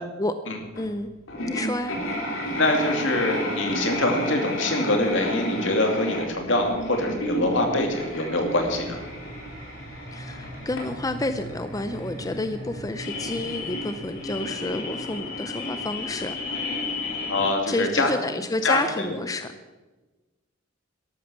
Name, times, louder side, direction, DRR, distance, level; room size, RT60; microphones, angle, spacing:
voice 1, 0.7-1.1 1.5-2.0 10.1-16.7 17.7-19.5, left 2 dB, 20° left, 9 dB, 0.5 m, -30 dB
sound 1, 0.8-0.9 1.3-17.5, left 1 dB, 85° left, 3.7 m, -32 dB
voice 2, 2.5-9.0 17.3-18.1 18.6-19.2, left 2 dB, 70° left, 3 dB, 2.7 m, -24 dB
sound 2, 7.6-18.8, right 1 dB, 40° right, 3.7 m, -43 dB
13.5 x 12.0 x 6.4 m, 1.2 s
head